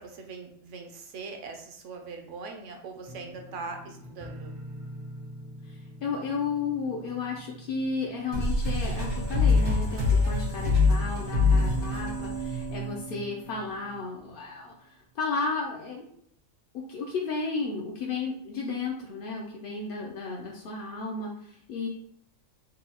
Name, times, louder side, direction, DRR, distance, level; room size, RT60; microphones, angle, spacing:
voice 1, 0.0-4.5, right 4 dB, 70° right, 4 dB, 0.9 m, -41 dB
sound 1, 3.1-9.9 10.2-10.8 11.1-11.2, equal, 50° right, 0.4 m, -45 dB
voice 2, 5.6-16.1 16.7-21.9, left 4 dB, 60° left, -2 dB, 0.5 m, -33 dB
sound 2, 8.3-13.6, left 3 dB, 90° right, 1.7 m, -25 dB
4.1 x 2.3 x 2.8 m, 0.67 s
omnidirectional pair, 1.4 m